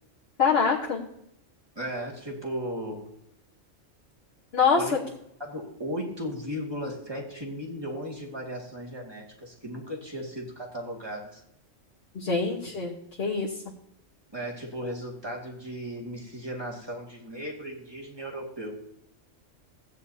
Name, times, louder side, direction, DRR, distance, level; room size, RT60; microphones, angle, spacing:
voice 1, 0.4-1.0 4.5-4.8 12.1-13.5, left 5 dB, 55° left, -2 dB, 1.4 m, -24 dB
voice 2, 1.8-3.1 4.8-5.0 5.4-11.4 14.3-18.8, equal, 20° right, -1 dB, 2.2 m, -36 dB
16.0 x 9.3 x 2.8 m, 0.79 s
omnidirectional pair, 1.3 m